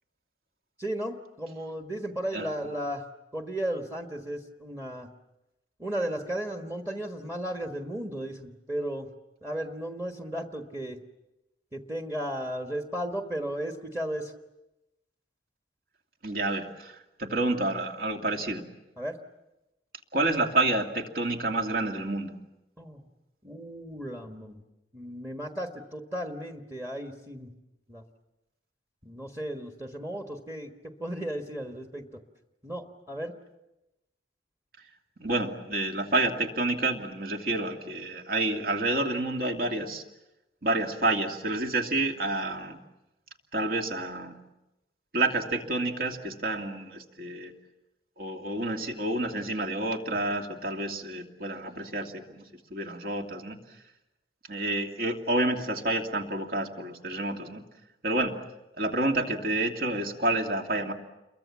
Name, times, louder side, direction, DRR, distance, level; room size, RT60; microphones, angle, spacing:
voice 1, 0.8-3.1 3.3-5.1 5.8-9.1 9.4-11.0 11.7-14.3 19.0-19.2 22.8-23.0 23.4-24.6 24.9-27.5 27.9-28.0 29.0-30.7 31.0-32.1 32.6-33.3, right 1 dB, 15° right, 4 dB, 1.4 m, -35 dB
voice 2, 16.2-16.9 17.2-18.6 20.1-22.3 35.2-40.0 40.6-42.8 43.5-44.3 45.1-47.5 48.2-52.4 52.7-53.6 54.5-57.6 58.0-58.3 58.8-60.9, right 2 dB, 55° right, 3 dB, 2.5 m, -29 dB
29.0 x 23.0 x 7.3 m, 0.95 s
head